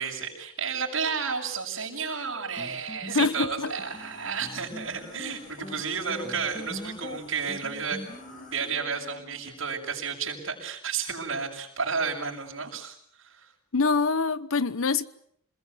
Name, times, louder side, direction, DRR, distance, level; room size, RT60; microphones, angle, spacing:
voice 1, 0.0-8.0 8.3-13.5, right 5 dB, 75° right, 7.0 m, -32 dB
sound 1, 2.6-9.6, left 1 dB, 20° left, 2.5 m, -43 dB
voice 2, 3.1-3.7 13.7-15.1, left 4 dB, 90° left, 1.0 m, -25 dB
sound 2, 3.6-8.7, left 2 dB, 40° left, 7.3 m, -51 dB
27.5 x 21.0 x 8.4 m
head